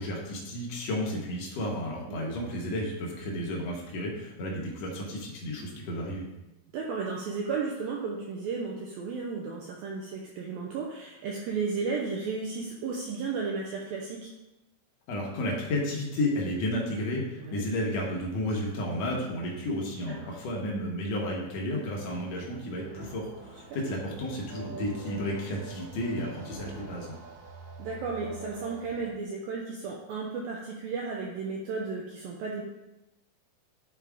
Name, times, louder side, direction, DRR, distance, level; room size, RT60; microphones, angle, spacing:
voice 1, 0.0-6.2 15.1-27.1, left 1 dB, 65° left, -2 dB, 1.7 m, -32 dB
voice 2, 6.7-14.3 17.4-17.7 23.7-23.8 27.8-32.6, right 4 dB, 80° right, -2 dB, 2.2 m, -34 dB
sound 1, 22.1-29.1, right 4 dB, 65° right, 2.0 m, -45 dB
11.0 x 4.6 x 3.6 m, 0.98 s
omnidirectional pair, 5.0 m